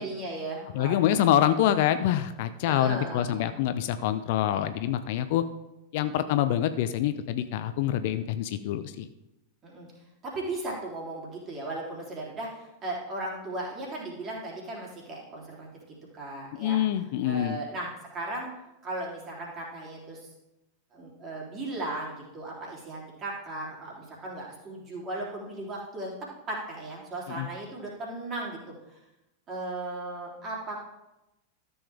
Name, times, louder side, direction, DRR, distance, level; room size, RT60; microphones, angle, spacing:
voice 1, 0.0-1.2 2.7-3.5 9.6-9.9 10.2-15.7 16.1-16.8 17.2-18.5 18.8-20.3 20.9-26.1 26.5-29.0 29.5-30.8, right 2 dB, 30° right, -3 dB, 3.3 m, -36 dB
voice 2, 0.7-5.4 5.9-9.1 16.5-17.6 27.3-27.5, left 11 dB, 50° left, 11 dB, 0.5 m, -26 dB
13.0 x 7.0 x 3.5 m, 0.96 s
figure-of-eight pair, 90°, 0 cm